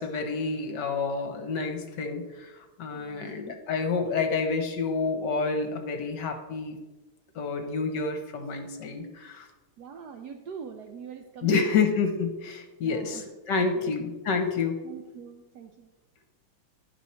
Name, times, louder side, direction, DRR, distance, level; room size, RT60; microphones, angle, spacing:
voice 1, 0.0-6.8 7.3-9.5 11.4-14.8, left 4 dB, 65° left, 5 dB, 1.4 m, -29 dB
voice 2, 2.9-3.6 9.8-11.7 12.8-13.2 13.8-13.9 14.8-15.9, right 6 dB, 75° right, 5 dB, 0.9 m, -43 dB
11.0 x 5.4 x 4.2 m, 1.2 s
omnidirectional pair, 2.2 m